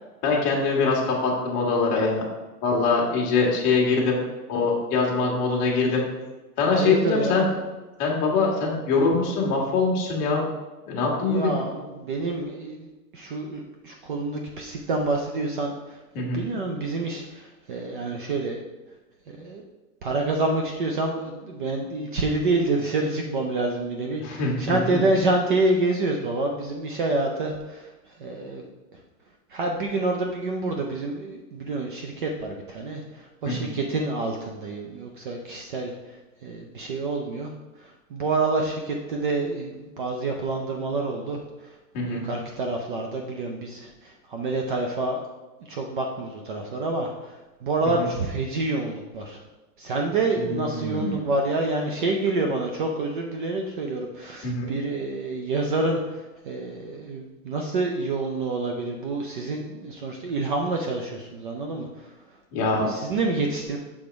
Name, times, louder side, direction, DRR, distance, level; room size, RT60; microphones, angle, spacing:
voice 1, 0.2-2.2 2.6-4.2 4.5-6.1 6.6-7.5 8.0-10.4 10.9-11.6 16.1-16.4 24.2-25.0 33.4-33.7 41.9-42.2 48.0-48.1 50.4-51.1 54.4-54.7 62.5-62.9, left 4 dB, 30° left, -2 dB, 1.4 m, -23 dB
voice 2, 6.7-7.5 11.2-18.6 19.3-19.6 20.0-27.9 28.2-28.6 29.5-35.9 36.4-37.5 37.8-41.7 42.1-45.2 45.7-47.3 47.6-49.4 49.8-62.1 62.8-63.8, right 2 dB, 35° right, 2 dB, 0.5 m, -28 dB
6.8 x 3.5 x 5.1 m, 1.1 s
supercardioid pair, 165°, 47 cm